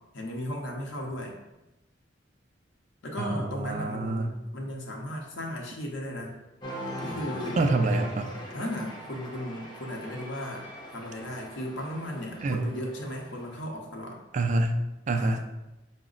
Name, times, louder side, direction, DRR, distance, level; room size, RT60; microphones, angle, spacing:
voice 1, 0.1-1.4 3.0-6.3 7.0-7.6 8.5-10.6 10.9-14.2 15.1-15.4, left 1 dB, 65° left, 0 dB, 0.7 m, -36 dB
voice 2, 3.2-4.3 7.6-8.3 12.4-12.6 14.3-14.8 15.1-15.4, right 2 dB, 40° right, 6 dB, 0.3 m, -26 dB
Cheering, 6.6-13.6, equal, 20° left, 0.6 m, -41 dB
4.9 x 2.0 x 3.7 m, 0.98 s
head